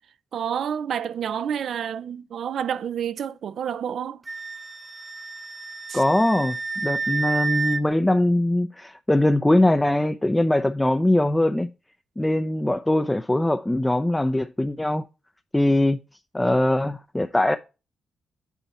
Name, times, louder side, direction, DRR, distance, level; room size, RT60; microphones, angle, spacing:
voice 1, 0.3-4.2 5.9-6.0, right 8 dB, 70° right, 0.5 m, -29 dB
Wind instrument woodwind instrument, 4.3-7.8, right 4 dB, 30° right, 0.8 m, -30 dB
voice 2, 5.9-11.7 12.2-15.0 15.5-16.0 16.3-17.6, left 1 dB, 10° left, 0.6 m, -21 dB
8.3 x 4.3 x 7.0 m
cardioid pair, 95°, 0 cm